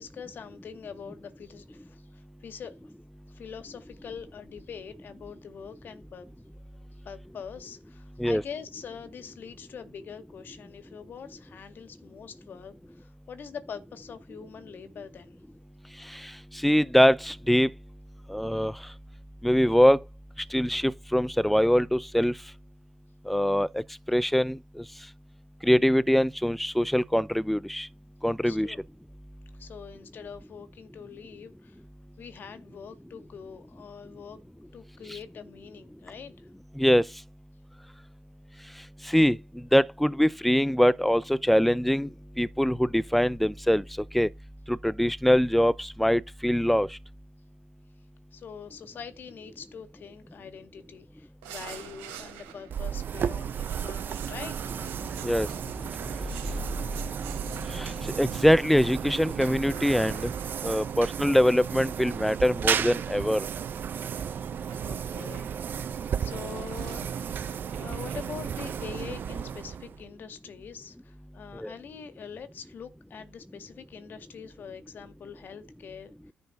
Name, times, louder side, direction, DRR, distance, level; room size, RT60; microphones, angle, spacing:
voice 1, 0.0-2.9 3.3-6.3 7.0-15.4 28.4-28.8 29.5-31.8 32.2-34.4 34.7-36.5 48.3-54.6 56.5-57.1 64.8-67.0 67.5-76.1, left 7 dB, 55° left, 1.9 m, -44 dB
voice 2, 16.6-17.7 18.3-18.7 19.4-20.0 20.5-22.3 23.3-23.7 24.1-24.6 25.6-27.9 28.2-28.7 36.8-37.0 39.1-42.1 42.4-43.8 44.1-44.3 44.7-46.9 55.2-55.5 57.7-60.3 60.6-63.4 71.6-71.7, equal, 5° left, 0.6 m, -23 dB
sound 1, 51.4-53.0 53.7-58.7 59.7-61.8 62.8-64.0 64.7-65.0 66.4-68.7 68.9-69.1, right 9 dB, 80° right, 2.9 m, -48 dB
sound 2, 52.7-70.1, right 8 dB, 55° right, 0.9 m, -34 dB
sound 3, 54.6-60.0, equal, 15° right, 3.5 m, -40 dB
10.5 x 4.5 x 5.4 m
hypercardioid pair, 50°, 4 cm